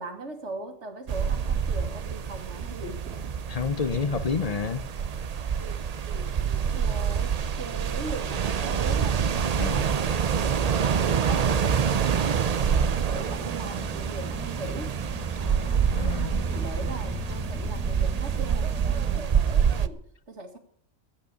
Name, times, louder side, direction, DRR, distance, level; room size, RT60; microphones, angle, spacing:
voice 1, 0.0-3.3 5.6-10.0 10.4-12.4 12.9-15.0 15.4-15.9 16.2-20.6, right 2 dB, 55° right, 2.1 m, -40 dB
sound 1, 1.1-19.9, right 7 dB, 80° right, 0.3 m, -27 dB
voice 2, 3.5-4.9 9.6-9.8 15.9-16.4, left 6 dB, 45° left, 0.5 m, -29 dB
sound 2, 13.1-19.2, right 1 dB, 5° right, 0.9 m, -37 dB
13.5 x 8.8 x 6.7 m
omnidirectional pair, 1.5 m